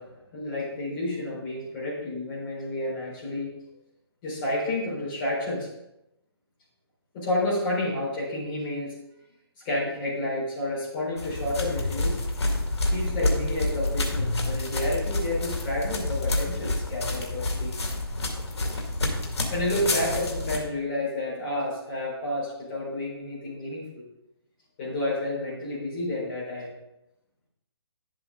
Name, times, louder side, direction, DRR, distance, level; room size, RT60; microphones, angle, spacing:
voice 1, 0.0-3.5 4.2-5.7 7.1-9.0 9.6-12.2 12.9-17.7 19.5-23.8 24.8-26.7, left 1 dB, 25° left, -7 dB, 4.1 m, -30 dB
sound 1, 11.2-20.6, left 1 dB, 85° left, 2.2 m, -28 dB
11.0 x 7.6 x 3.8 m, 0.86 s
hypercardioid pair, 165°, 14 cm